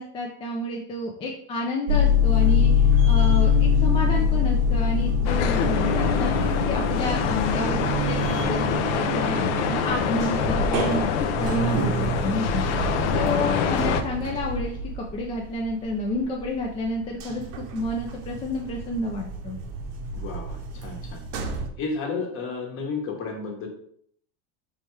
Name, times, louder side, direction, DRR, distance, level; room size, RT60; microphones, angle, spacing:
voice 1, 0.0-9.4 9.7-12.9 13.1-19.6, left 1 dB, 15° left, 0 dB, 0.3 m, -30 dB
sound 1, 1.9-16.5 16.8-21.7, left 4 dB, 60° right, 0.8 m, -25 dB
sound 2, 5.2-14.0, left 8 dB, 85° left, 0.6 m, -26 dB
voice 2, 20.1-21.2 21.8-23.7, left 4 dB, 40° left, 2 dB, 1.1 m, -32 dB
4.2 x 3.4 x 3.2 m, 0.63 s
supercardioid pair, 145°, 34 cm